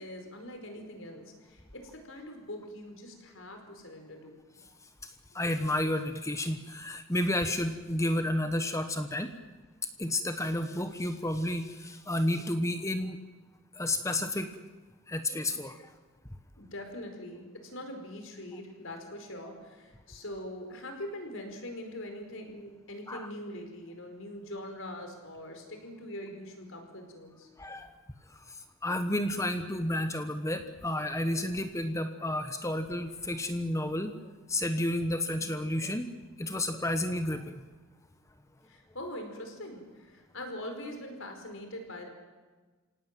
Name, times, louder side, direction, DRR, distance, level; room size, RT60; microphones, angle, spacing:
voice 1, 0.0-4.3 16.6-27.5 38.6-42.1, left 1 dB, 60° left, 4 dB, 5.0 m, -43 dB
voice 2, 5.0-9.3 10.0-13.2 13.7-14.5 15.1-15.9 23.1-23.3 27.6-27.9 28.3-34.1 34.5-36.1 36.4-37.6, left 1 dB, 15° left, 8 dB, 1.1 m, -31 dB
29.5 x 17.5 x 9.2 m, 1.3 s
head